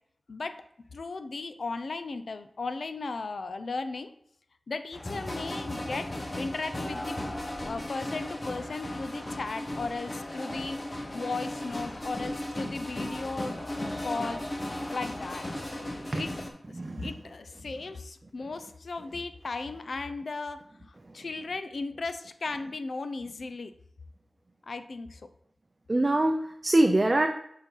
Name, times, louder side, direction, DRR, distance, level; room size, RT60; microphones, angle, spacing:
voice 1, 0.9-4.1 4.7-6.1 6.3-7.2 7.6-10.8 11.1-14.4 14.9-15.5 16.1-16.3 16.7-20.6 20.9-23.7 24.6-25.3, left 3 dB, 80° left, 10 dB, 0.4 m, -36 dB
sound 1, 4.9-16.5, left 1 dB, 40° left, 1.0 m, -36 dB
voice 2, 16.8-17.1 25.9-27.3, right 1 dB, 40° right, 5 dB, 0.5 m, -24 dB
7.0 x 4.1 x 3.8 m, 0.70 s
wide cardioid pair, 55°, 0 cm